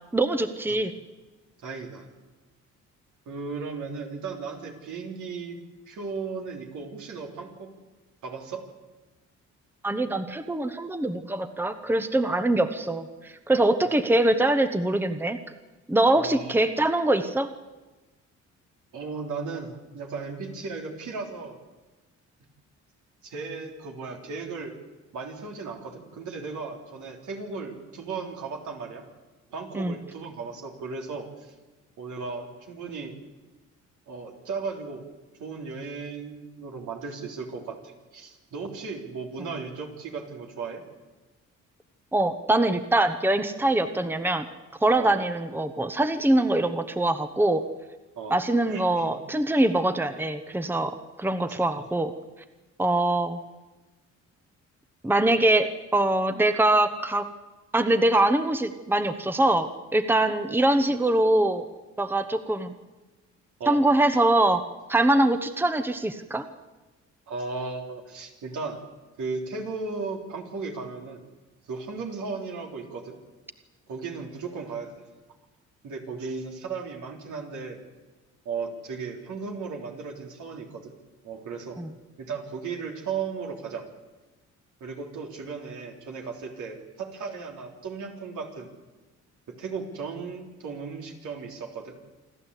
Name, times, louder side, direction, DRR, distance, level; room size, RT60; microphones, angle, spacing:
voice 1, 0.1-0.9 9.8-15.4 15.9-17.5 29.7-30.0 42.1-44.5 44.8-47.7 48.3-52.1 52.8-53.4 55.0-57.3 57.7-61.6 62.0-62.8 63.7-64.6 64.9-66.4 81.8-81.9, right 1 dB, 5° right, 10 dB, 1.1 m, -23 dB
voice 2, 1.6-2.1 3.3-5.6 5.9-7.7 8.2-8.7 16.2-16.6 18.9-21.6 23.2-24.8 25.1-29.0 29.5-31.5 32.0-33.2 34.1-35.0 35.4-40.8 45.0-45.2 48.2-49.1 51.5-51.9 63.6-63.8 67.3-68.8 69.2-71.2 71.7-73.1 73.9-75.0 75.8-77.8 78.5-80.9 81.2-81.8 82.2-83.9 84.8-88.7 89.5-92.0, right 4 dB, 75° right, 1 dB, 3.6 m, -36 dB
27.5 x 12.0 x 8.4 m, 1.2 s
cardioid pair, 90°, 30 cm